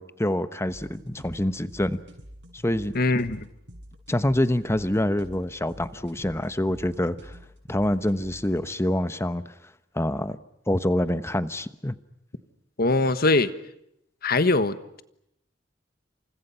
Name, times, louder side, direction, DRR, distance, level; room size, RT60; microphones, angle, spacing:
voice 1, 0.0-2.0 2.6-2.9 4.1-7.4 7.7-9.4 9.9-10.4 10.7-11.9, left 1 dB, 15° left, 12 dB, 1.1 m, -26 dB
sound 1, 0.7-8.7, equal, 65° right, 7.0 m, -47 dB
voice 2, 2.9-3.5 12.8-13.5 14.2-15.0, left 2 dB, 50° left, 12 dB, 1.4 m, -22 dB
29.5 x 27.5 x 5.8 m, 0.78 s
head